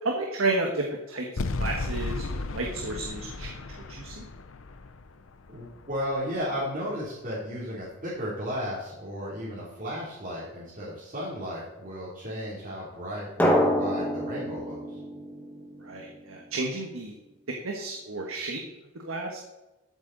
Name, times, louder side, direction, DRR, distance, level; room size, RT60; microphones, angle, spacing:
voice 1, 0.0-3.5 3.9-4.3 15.8-17.1 17.5-18.6 18.9-19.4, right 2 dB, 85° right, 1 dB, 1.5 m, -32 dB
sound 1, 1.4-6.5, left 3 dB, 80° left, 0.7 m, -35 dB
voice 2, 5.5-15.0, equal, 40° right, -9 dB, 3.3 m, -34 dB
Drum, 13.4-16.1, equal, 10° left, 1.7 m, -26 dB
13.0 x 8.2 x 4.1 m, 1.0 s
head